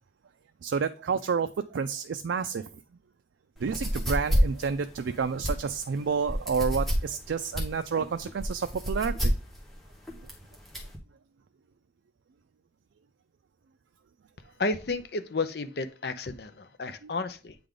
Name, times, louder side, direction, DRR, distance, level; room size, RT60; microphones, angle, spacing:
voice 1, 0.6-2.7 3.6-9.3 17.0-17.1, right 5 dB, 80° right, 8 dB, 0.4 m, -30 dB
sound 1, 3.6-11.0, equal, ahead, 1.1 m, -30 dB
voice 2, 14.6-17.6, left 3 dB, 60° left, 10 dB, 0.6 m, -32 dB
8.6 x 3.4 x 3.8 m, 0.35 s
head